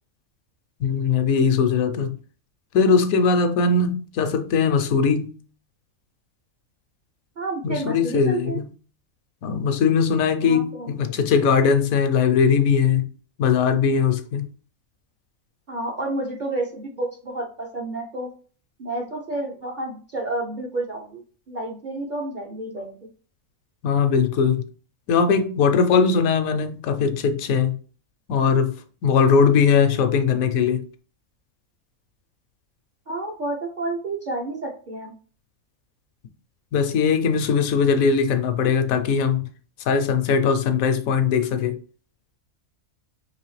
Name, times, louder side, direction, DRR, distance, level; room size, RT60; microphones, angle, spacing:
voice 1, 0.8-2.1 2.7-5.3 7.6-8.7 9.4-13.1 13.4-14.5 23.8-24.6 25.1-27.8 28.3-28.7 29.0-30.8 36.7-39.5 39.9-41.7, left 6 dB, 75° left, 1.1 m, -20 dB
voice 2, 7.4-8.6 10.4-11.1 15.7-18.3 18.8-23.0 33.1-35.1, right 2 dB, 45° right, 0.7 m, -30 dB
4.8 x 3.1 x 3.1 m
omnidirectional pair, 1.5 m